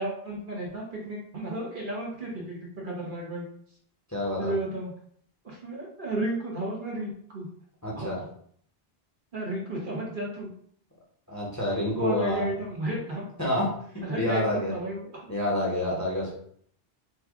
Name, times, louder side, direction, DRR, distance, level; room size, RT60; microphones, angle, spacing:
voice 1, 0.0-3.5 4.4-4.9 5.4-7.5 8.0-8.1 9.3-10.5 11.9-13.2 14.0-15.3, right 1 dB, 55° right, -3 dB, 1.1 m, -33 dB
voice 2, 4.1-4.5 7.8-8.2 11.3-12.5 13.4-13.7 14.2-14.7 15.3-16.3, left 1 dB, 20° left, -5 dB, 0.8 m, -28 dB
3.1 x 2.3 x 3.5 m, 0.63 s
omnidirectional pair, 1.0 m